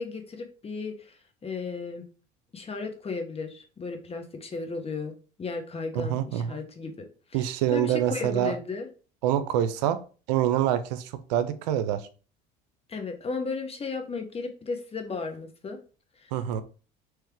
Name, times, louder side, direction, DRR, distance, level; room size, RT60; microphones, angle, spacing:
voice 1, 0.0-2.1 2.5-8.9 12.9-15.8 16.2-16.3, left 4 dB, 30° left, 4 dB, 1.1 m, -35 dB
voice 2, 5.9-6.6 7.3-8.5 9.2-10.0 10.3-12.0 16.3-16.6, right 11 dB, 90° right, 11 dB, 0.5 m, -26 dB
3.5 x 3.2 x 4.6 m, 0.37 s
supercardioid pair, 80°, 21 cm